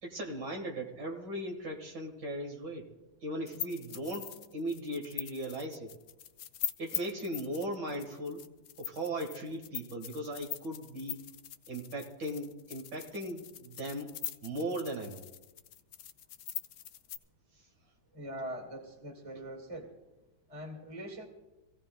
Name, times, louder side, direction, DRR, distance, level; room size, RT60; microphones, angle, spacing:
voice 1, 0.0-2.9 3.2-5.9 6.8-8.4 8.8-11.2 11.7-14.1 14.4-15.2, right 1 dB, 65° right, 2 dB, 2.2 m, -38 dB
sound 1, 3.5-17.2, left 10 dB, 70° left, 0.9 m, -42 dB
voice 2, 18.1-20.0 20.5-21.3, right 1 dB, 20° right, 1 dB, 1.9 m, -42 dB
25.5 x 16.0 x 2.2 m, 1.0 s
omnidirectional pair, 2.0 m